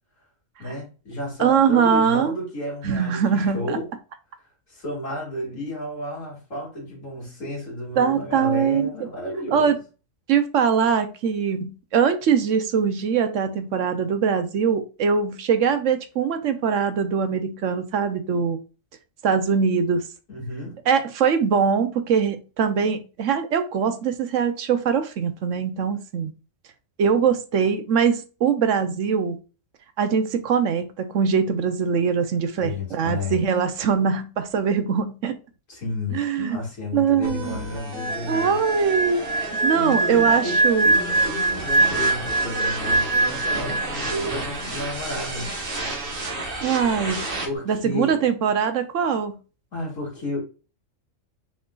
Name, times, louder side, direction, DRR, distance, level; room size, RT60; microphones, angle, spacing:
voice 1, 0.6-3.9 4.7-9.8 20.3-20.8 32.6-33.4 35.7-38.6 39.7-45.6 47.4-48.2 49.7-50.4, left 1 dB, 75° left, 2.9 m, -32 dB
voice 2, 1.4-2.3 2.8-3.8 8.0-8.9 9.5-9.8 10.3-18.6 19.2-20.0 20.9-26.3 27.0-29.4 30.0-35.4 36.1-36.6 36.9-37.6 38.3-40.9 43.7-43.8 46.6-47.2 47.7-49.4, right 6 dB, 70° right, 1.1 m, -22 dB
sound 1, 37.2-47.5, right 2 dB, 45° right, 1.5 m, -32 dB
sound 2, 38.0-44.3 44.6-44.9, right 2 dB, 15° left, 0.9 m, -23 dB
5.8 x 3.8 x 2.4 m
omnidirectional pair, 1.4 m